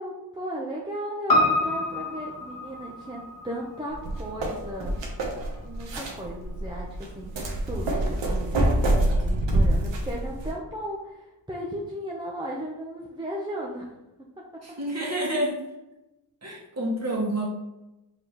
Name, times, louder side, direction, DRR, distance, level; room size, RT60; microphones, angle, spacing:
voice 1, 0.0-5.1 5.6-13.9 14.4-14.5, equal, 10° right, -3 dB, 0.7 m, -36 dB
Piano, 1.3-5.8 6.1-6.2, left 1 dB, 50° left, 1.2 m, -28 dB
sound 1, 3.9-10.5, right 1 dB, 70° right, 1.1 m, -26 dB
voice 2, 14.6-15.6 16.4-17.5, right 1 dB, 35° right, -3 dB, 1.6 m, -28 dB
4.9 x 3.5 x 3.0 m, 0.98 s
cardioid pair, 65°, 45 cm